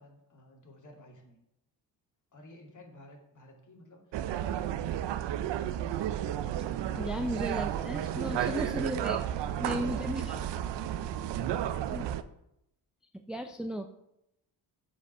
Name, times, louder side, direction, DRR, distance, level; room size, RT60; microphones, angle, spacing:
voice 1, 0.0-1.4 2.3-5.4 6.9-8.9 9.2-11.1 11.3-12.2, left 1 dB, 45° left, 0 dB, 2.8 m, -52 dB
sound 1, 4.1-12.2, right 11 dB, 75° right, 0.6 m, -32 dB
voice 2, 7.0-9.2 9.6-10.4 11.9-12.0 13.1-14.0, right 1 dB, ahead, 6 dB, 0.5 m, -35 dB
8.1 x 5.1 x 6.8 m, 0.82 s
cardioid pair, 85°, 43 cm